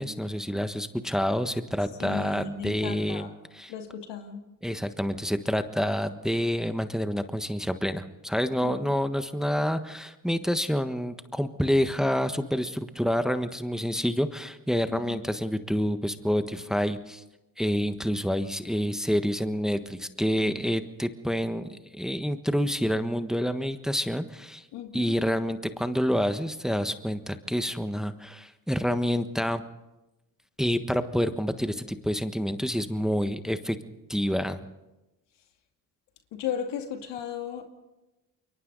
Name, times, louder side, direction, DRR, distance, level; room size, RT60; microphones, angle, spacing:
voice 1, 0.0-3.3 3.5-3.7 4.6-17.2 17.6-24.6 24.9-29.6 30.6-33.8 34.1-34.6, equal, ahead, 9 dB, 1.4 m, -28 dB
voice 2, 2.0-3.3 3.7-4.4 8.6-8.9 14.8-15.2 24.7-25.2 36.3-37.7, left 8 dB, 85° left, 5 dB, 2.3 m, -35 dB
29.0 x 23.0 x 4.0 m, 0.99 s
supercardioid pair, 65°, 41 cm